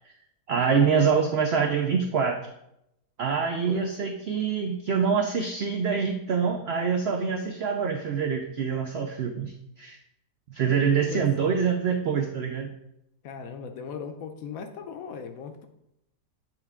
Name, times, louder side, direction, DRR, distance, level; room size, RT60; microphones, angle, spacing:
voice 1, 0.5-2.5 3.2-10.0 10.5-12.7, right 6 dB, 85° right, 3 dB, 0.5 m, -25 dB
voice 2, 13.2-15.7, left 6 dB, 70° left, 6 dB, 1.0 m, -38 dB
8.0 x 3.4 x 3.5 m, 0.81 s
omnidirectional pair, 1.7 m